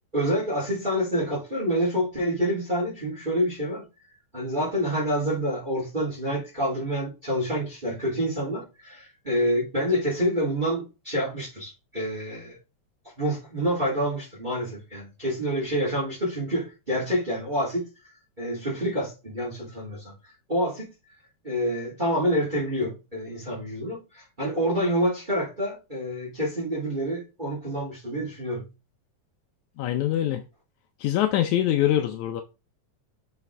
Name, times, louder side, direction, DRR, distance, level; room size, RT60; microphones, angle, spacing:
voice 1, 0.1-3.8 4.3-12.6 13.2-17.8 18.4-20.1 20.5-20.9 21.4-28.6, equal, 15° right, 4.0 m, -27 dB
voice 2, 29.8-30.4 31.0-32.4, left 12 dB, 80° left, 2.1 m, -24 dB
7.3 x 5.9 x 3.3 m
omnidirectional pair, 3.4 m